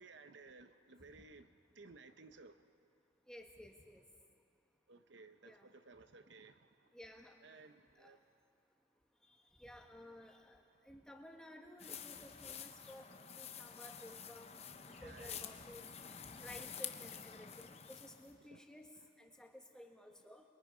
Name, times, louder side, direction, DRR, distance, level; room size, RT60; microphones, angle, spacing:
voice 1, 0.0-2.7 4.9-6.9 7.4-8.3 14.8-15.5 18.4-18.7 18.9-19.1 19.4-19.5, right 3 dB, 70° right, 0.7 m, -58 dB
voice 2, 3.3-4.0 5.4-5.6 6.9-7.4 8.0-8.2 9.6-10.6 10.9-13.1 13.3-14.5 14.8-15.8 16.2-20.4, equal, 5° left, 1.3 m, -55 dB
sound 1, 11.8-18.3, left 8 dB, 30° left, 0.8 m, -49 dB
28.0 x 22.0 x 5.0 m
head